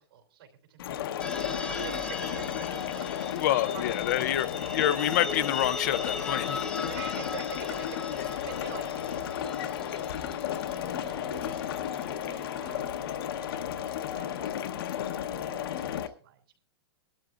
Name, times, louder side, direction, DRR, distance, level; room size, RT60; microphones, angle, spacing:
voice 1, 0.0-4.6 6.8-13.0 13.3-16.6, right 7 dB, 65° right, 3.2 m, -48 dB
sound 1, 0.8-16.1, left 10 dB, 65° left, 1.0 m, -33 dB
sound 2, 1.2-13.7, left 3 dB, 5° left, 1.0 m, -40 dB
voice 2, 3.3-4.5 4.7-6.6, left 12 dB, 45° left, 0.5 m, -27 dB
19.5 x 12.5 x 2.4 m
supercardioid pair, 165°, 13 cm